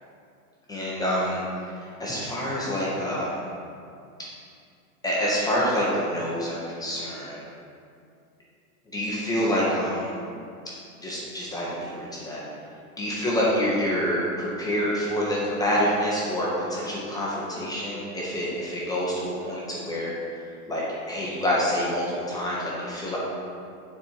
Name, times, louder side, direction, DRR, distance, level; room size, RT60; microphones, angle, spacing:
voice 1, 0.7-3.4 5.0-7.4 8.9-10.1 11.0-12.4 13.0-20.1 20.7-23.2, equal, 10° left, -7 dB, 1.2 m, -27 dB
8.3 x 4.6 x 4.8 m, 2.4 s
hypercardioid pair, 140°, 45 cm